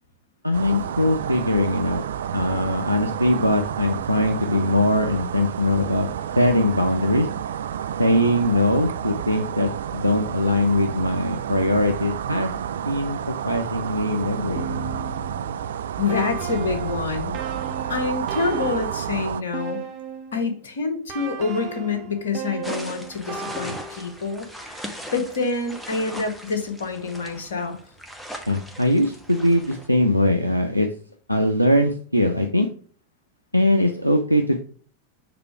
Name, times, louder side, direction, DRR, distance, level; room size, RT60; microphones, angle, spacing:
voice 1, 0.4-2.0 2.3-6.1 6.3-7.3 8.0-12.5 12.8-14.9 28.5-30.9 31.3-32.7 33.5-34.6, left 1 dB, 90° left, 4 dB, 0.5 m, -21 dB
sound 1, 0.5-19.4, right 9 dB, 60° right, 0.3 m, -30 dB
sound 2, 14.6-20.5 21.1-24.3, right 5 dB, 35° right, 1.1 m, -35 dB
voice 2, 16.0-17.4 17.9-19.8 20.3-24.8 25.1-27.8, left 4 dB, 65° left, 6 dB, 1.3 m, -27 dB
sound 3, 22.6-29.9, equal, 5° left, 1.1 m, -39 dB
6.8 x 3.6 x 4.6 m, 0.43 s
figure-of-eight pair, 90°, 0 cm